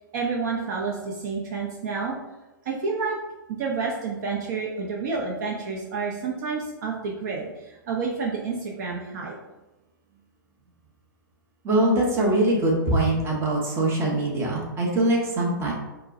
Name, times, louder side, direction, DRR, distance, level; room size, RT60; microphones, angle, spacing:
voice 1, 0.1-2.2 2.6-3.2 3.5-9.3, right 4 dB, 55° right, -2 dB, 0.6 m, -29 dB
voice 2, 11.6-15.7, right 1 dB, 20° right, -2 dB, 0.9 m, -22 dB
4.4 x 2.1 x 2.5 m, 1.1 s
hypercardioid pair, 115°, 11 cm